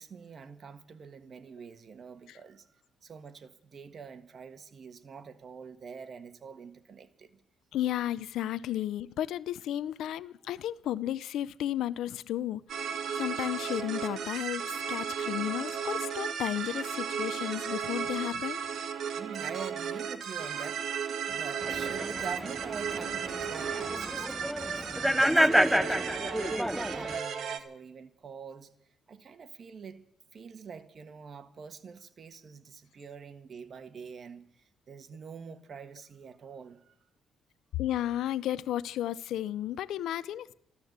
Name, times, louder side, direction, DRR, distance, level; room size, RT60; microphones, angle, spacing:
voice 1, 0.0-7.4 8.8-8.9 19.1-26.0 26.4-28.7 29.1-30.0 30.3-36.9, right 6 dB, 50° right, 1.5 m, -46 dB
voice 2, 7.7-18.6 37.8-40.5, left 12 dB, 80° left, 0.6 m, -33 dB
sound 1, 12.7-27.6, right 7 dB, 70° right, 1.6 m, -35 dB
sound 2, 21.6-27.2, equal, ahead, 0.7 m, -29 dB
14.0 x 12.5 x 8.1 m
cardioid pair, 90°, 0 cm